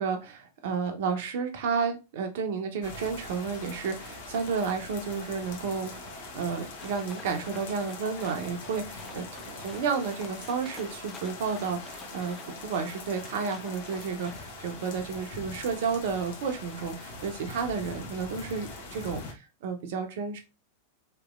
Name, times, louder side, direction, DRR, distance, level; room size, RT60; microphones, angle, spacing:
voice 1, 0.0-6.1 6.3-12.4 12.6-20.4, right 5 dB, 55° right, 6 dB, 0.7 m, -31 dB
sound 1, 2.8-19.3, left 2 dB, 55° left, 0.8 m, -42 dB
sound 2, 6.7-14.5, left 4 dB, 20° left, 0.6 m, -50 dB
3.3 x 2.9 x 2.4 m, 0.27 s
figure-of-eight pair, 90°, 0 cm